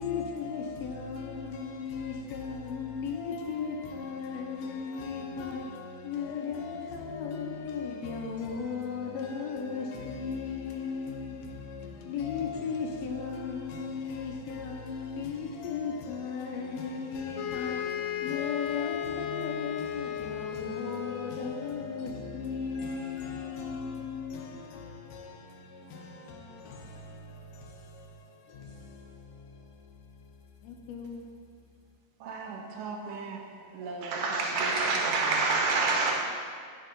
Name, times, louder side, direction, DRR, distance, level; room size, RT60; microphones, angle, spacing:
voice 1, 0.0-31.4, left 5 dB, 70° left, 1.7 m, -36 dB
sound 1, 17.3-21.7, left 10 dB, 85° left, 2.4 m, -35 dB
voice 2, 32.2-35.5, right 4 dB, 80° right, 2.5 m, -40 dB
voice 3, 34.0-36.1, right 3 dB, 65° right, 2.5 m, -26 dB
11.5 x 6.5 x 3.8 m
omnidirectional pair, 3.8 m